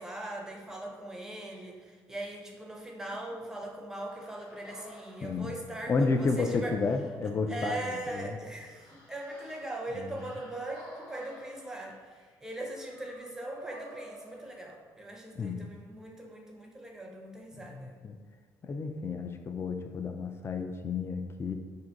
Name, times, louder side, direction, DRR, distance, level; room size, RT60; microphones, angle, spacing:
voice 1, 0.0-6.8 7.5-18.0, right 1 dB, 5° right, 0 dB, 0.7 m, -40 dB
sound 1, 4.0-15.1, equal, 60° left, 1.2 m, -52 dB
voice 2, 5.2-5.5 5.9-8.4 10.0-10.1 15.4-15.7 17.5-18.2 18.6-21.5, left 4 dB, 30° left, 6 dB, 0.3 m, -31 dB
2.6 x 2.4 x 3.9 m, 1.4 s
supercardioid pair, 65°, 8 cm